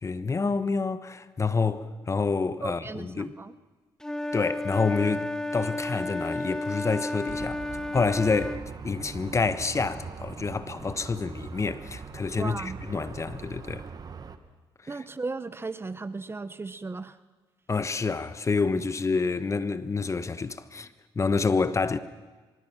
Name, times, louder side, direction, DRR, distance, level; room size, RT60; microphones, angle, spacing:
voice 1, 0.0-3.3 4.3-7.6 7.9-8.6 8.8-13.9 17.7-22.0, left 4 dB, 30° left, 1.1 m, -28 dB
voice 2, 2.6-3.5 12.4-12.8 14.9-17.2, right 3 dB, 25° right, 0.8 m, -36 dB
Wind instrument woodwind instrument, 4.0-8.6, left 1 dB, 5° left, 0.7 m, -32 dB
sound 1, 7.3-14.4, right 5 dB, 45° right, 1.5 m, -41 dB
24.0 x 22.5 x 6.0 m
cardioid pair, 75°, 10 cm